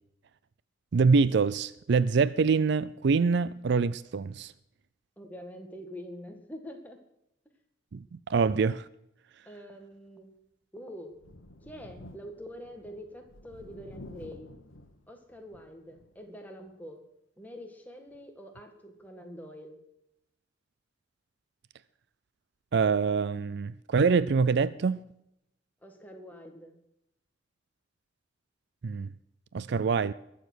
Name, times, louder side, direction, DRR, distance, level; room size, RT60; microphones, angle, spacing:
voice 1, 0.9-4.5 7.9-8.9 22.7-25.0 28.8-29.1 29.5-30.1, right 5 dB, 60° right, 0.4 m, -25 dB
voice 2, 5.2-7.0 9.5-10.3 10.7-11.2 11.6-14.5 15.1-17.0 17.4-19.8 25.8-26.8, equal, 10° left, 1.9 m, -45 dB
Thunder, 11.1-16.2 16.7-16.8 18.1-18.2, left 1 dB, 90° left, 1.2 m, -51 dB
21.0 x 7.2 x 6.3 m
head